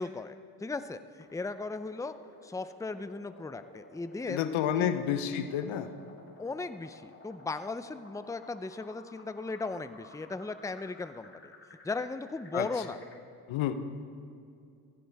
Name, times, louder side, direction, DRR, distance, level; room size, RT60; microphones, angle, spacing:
voice 1, 0.0-2.1 2.4-4.4 4.7-4.9 6.4-11.5 11.8-13.0, left 3 dB, 5° left, 11 dB, 0.7 m, -37 dB
sound 1, 1.2-13.2, left 2 dB, 25° left, 2.7 m, -55 dB
voice 2, 4.3-5.9 12.5-12.7 13.5-13.7, left 10 dB, 75° left, 10 dB, 1.1 m, -29 dB
18.5 x 15.5 x 3.6 m, 2.4 s
hypercardioid pair, 50°, 48 cm